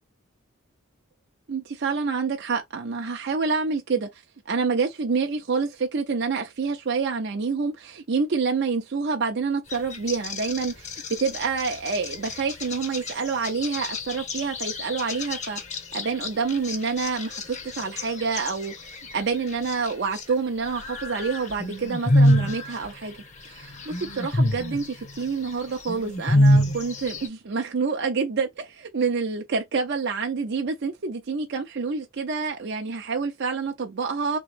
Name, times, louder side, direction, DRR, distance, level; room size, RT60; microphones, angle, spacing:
voice 1, 1.5-4.1 4.5-10.9 11.2-15.6 15.9-34.4, right 4 dB, 55° right, 0.6 m, -27 dB
sound 1, 9.7-20.3 20.6-27.3, left 1 dB, 35° left, 0.8 m, -27 dB
3.3 x 3.0 x 3.3 m
head